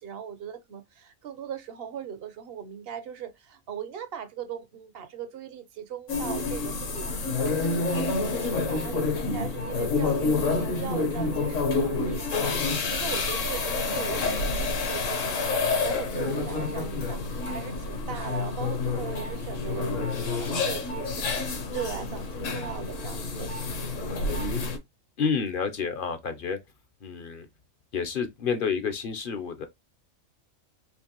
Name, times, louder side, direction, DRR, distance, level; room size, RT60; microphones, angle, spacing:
voice 1, 0.0-23.7, right 8 dB, 55° right, 0.8 m, -39 dB
sound 1, 6.1-24.8, left 3 dB, 70° left, 1.3 m, -28 dB
voice 2, 25.2-26.6 27.0-27.5 27.9-29.7, left 6 dB, 50° left, 0.7 m, -29 dB
4.5 x 2.9 x 2.9 m
omnidirectional pair, 1.4 m